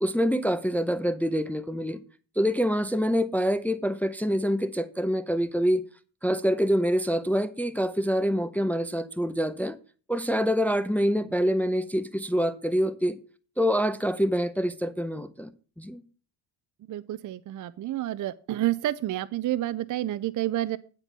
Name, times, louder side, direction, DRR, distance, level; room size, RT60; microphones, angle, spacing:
voice 1, 0.0-2.0 2.4-5.8 6.2-9.8 10.1-13.2 13.6-15.5 15.8-16.0, equal, 5° left, 0.6 m, -26 dB
voice 2, 16.9-20.8, right 14 dB, 40° right, 0.4 m, -29 dB
9.8 x 4.5 x 6.7 m
cardioid pair, 90°, 48 cm